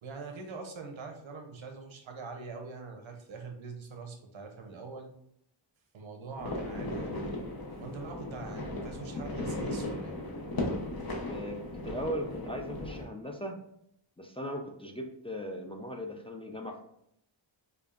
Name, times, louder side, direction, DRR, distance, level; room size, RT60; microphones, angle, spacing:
voice 1, 0.0-5.1 5.9-7.3 7.8-10.2, right 4 dB, 85° right, 4 dB, 0.8 m, -43 dB
sound 1, 6.4-13.1, left 1 dB, 50° left, 0.8 m, -36 dB
voice 2, 11.3-13.6 14.2-16.9, equal, 15° left, 1 dB, 0.4 m, -38 dB
5.1 x 2.4 x 2.4 m, 0.75 s
wide cardioid pair, 80°, 46 cm